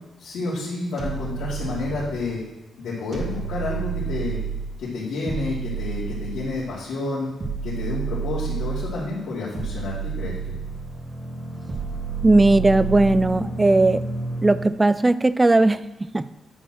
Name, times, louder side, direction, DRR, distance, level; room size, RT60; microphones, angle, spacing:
voice 1, 0.2-2.4 2.8-4.4 4.8-7.3 7.6-10.6, left 3 dB, 85° left, -9 dB, 2.6 m, -29 dB
sound 1, 1.0-2.3 3.1-4.8 5.3-6.7 7.4-9.0 9.5-10.9 11.7-13.3, right 7 dB, 40° right, 1.6 m, -30 dB
sound 2, 10.2-14.7, equal, ahead, 1.6 m, -33 dB
voice 2, 12.2-14.1 14.4-16.4, right 2 dB, 15° right, 16 dB, 0.3 m, -18 dB
10.0 x 4.4 x 6.2 m, 0.99 s
cardioid pair, 115°, 0 cm